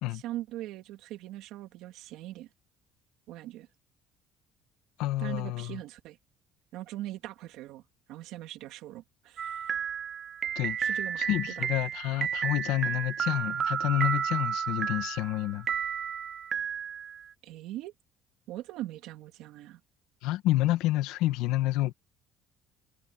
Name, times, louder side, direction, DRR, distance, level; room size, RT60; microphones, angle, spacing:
voice 1, 0.1-2.5 3.3-3.7 5.2-6.2 6.7-7.8 8.1-9.7 10.8-11.2 11.6-11.7 17.4-17.9 18.5-19.8, right 15 dB, 70° right, 2.6 m, -41 dB
voice 2, 5.0-5.8 10.6-10.8 11.2-15.7 20.2-21.9, left 16 dB, 90° left, 1.7 m, -29 dB
sound 1, 9.4-17.3, right 8 dB, 30° right, 0.6 m, -32 dB
cardioid pair, 170°, 0 cm